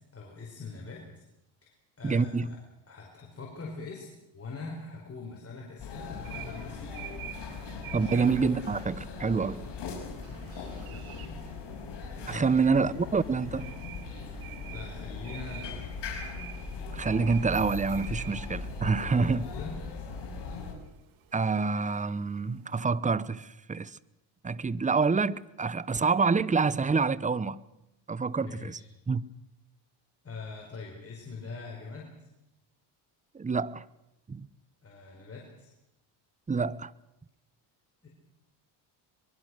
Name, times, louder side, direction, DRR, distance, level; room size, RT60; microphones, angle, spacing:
voice 1, 0.1-1.2 1.6-2.6 2.9-7.0 7.9-8.2 9.9-11.4 11.7-11.9 12.2-12.5 14.2-16.0 18.1-18.4 18.8-19.8 28.3-28.9 30.2-32.3 34.8-35.7 38.0-38.1, left 4 dB, 30° left, 5.0 m, -44 dB
voice 2, 2.0-2.5 7.9-9.6 12.3-13.7 16.9-19.4 21.3-23.9 24.4-27.6 28.1-28.8 29.1-29.2 33.3-33.8 34.3-34.5 36.5-36.9, right 4 dB, 15° right, 0.8 m, -27 dB
sound 1, 5.8-20.7, left 4 dB, 55° left, 6.4 m, -39 dB
sound 2, 6.2-22.8, right 12 dB, 75° right, 2.4 m, -49 dB
23.5 x 22.0 x 6.4 m
cardioid pair, 95°, 50 cm